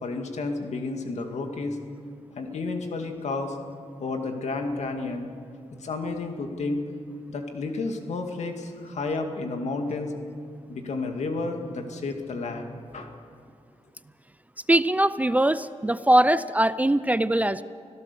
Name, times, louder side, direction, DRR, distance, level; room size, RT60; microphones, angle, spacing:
voice 1, 0.0-1.8 2.4-3.6 4.0-5.3 5.8-6.8 7.3-10.1 10.7-13.1, left 3 dB, 70° left, 4 dB, 2.3 m, -31 dB
voice 2, 14.7-17.6, right 1 dB, 15° right, 14 dB, 0.5 m, -21 dB
25.0 x 16.5 x 6.9 m, 2.3 s
wide cardioid pair, 110°, 12 cm